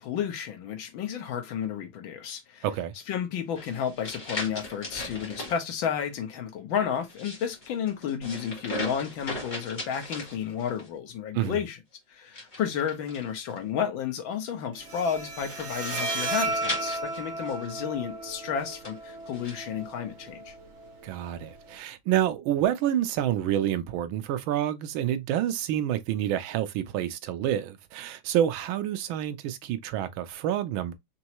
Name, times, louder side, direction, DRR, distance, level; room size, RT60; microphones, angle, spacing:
voice 1, 0.0-2.6 3.1-11.8 12.1-20.5, left 8 dB, 75° left, 1.7 m, -32 dB
voice 2, 2.6-2.9 11.3-11.6 21.0-30.9, right 11 dB, 85° right, 1.4 m, -28 dB
sound 1, 3.6-5.6 7.0-10.9 12.3-13.6 15.4-17.8 18.6-19.6, left 1 dB, 25° left, 1.6 m, -38 dB
Bowed string instrument, 14.7-21.7, right 2 dB, 50° right, 0.9 m, -35 dB
4.5 x 3.0 x 2.9 m
omnidirectional pair, 2.2 m